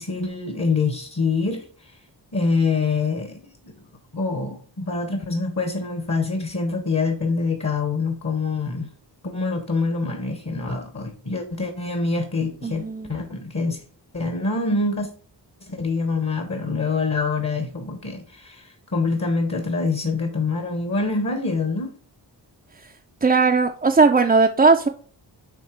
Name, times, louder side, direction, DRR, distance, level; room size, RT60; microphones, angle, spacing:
voice 1, 0.0-2.0 2.3-3.7 4.1-8.9 9.2-12.8 13.1-13.8 14.1-15.1 15.6-21.9, left 3 dB, 35° left, 6 dB, 1.0 m, -25 dB
voice 2, 12.6-13.2 23.2-24.9, right 4 dB, 20° right, 3 dB, 0.4 m, -18 dB
7.3 x 2.9 x 4.5 m, 0.42 s
cardioid pair, 60°, 45 cm